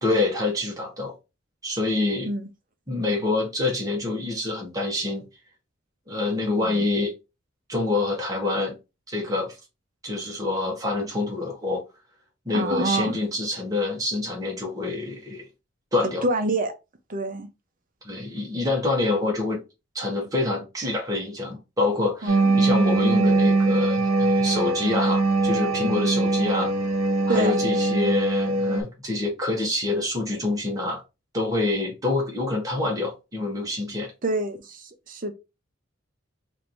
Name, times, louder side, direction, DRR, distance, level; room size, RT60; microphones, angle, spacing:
voice 1, 0.0-1.1 1.6-2.3 2.9-5.2 6.1-7.1 7.7-8.8 9.1-9.5 10.0-11.8 12.5-15.4 15.9-16.2 18.0-19.6 19.9-26.7 27.3-31.0 31.3-34.1, left 2 dB, 15° right, 1.1 m, -26 dB
voice 2, 12.5-13.2 16.0-16.7 17.1-17.5 22.2-22.5 27.3-27.6 34.2-35.3, right 2 dB, 40° right, 0.6 m, -27 dB
sound 1, 22.3-28.8, right 2 dB, 80° right, 0.9 m, -22 dB
3.2 x 2.6 x 4.2 m
head